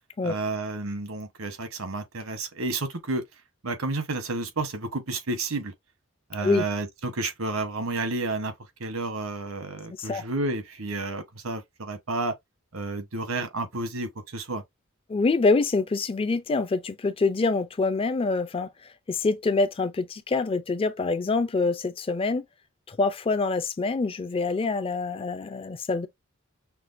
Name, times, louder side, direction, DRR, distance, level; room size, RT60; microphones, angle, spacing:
voice 1, 0.2-3.2 3.6-5.7 6.3-8.5 8.8-12.3 12.7-14.6, right 2 dB, 80° right, 1.0 m, -31 dB
voice 2, 15.1-22.4 22.9-26.1, left 3 dB, 25° left, 0.4 m, -25 dB
5.9 x 2.2 x 2.5 m
head